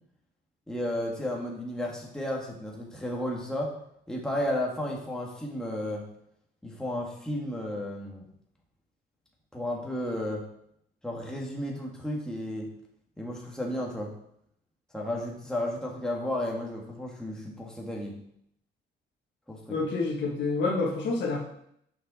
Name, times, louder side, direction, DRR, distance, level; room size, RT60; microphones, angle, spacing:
voice 1, 0.7-3.8 4.1-6.0 6.6-8.2 9.5-10.4 11.0-12.7 13.2-14.1 14.9-18.1 19.5-19.6, left 1 dB, 5° left, -2 dB, 1.7 m, -33 dB
voice 2, 19.7-21.4, left 3 dB, 65° left, -3 dB, 1.5 m, -28 dB
6.6 x 5.4 x 4.2 m, 0.72 s
cardioid pair, 90°, 20 cm